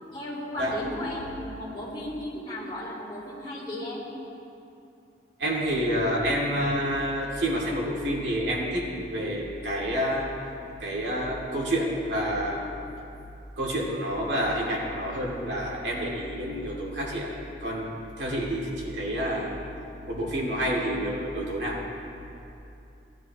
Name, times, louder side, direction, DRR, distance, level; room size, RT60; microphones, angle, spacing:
voice 1, 0.1-4.1, left 1 dB, 25° left, -7 dB, 3.3 m, -35 dB
voice 2, 5.4-10.3 10.8-12.6 13.6-17.9 18.2-19.5 20.1-21.8, equal, 80° right, -3 dB, 2.3 m, -28 dB
18.0 x 11.5 x 3.0 m, 2.7 s
head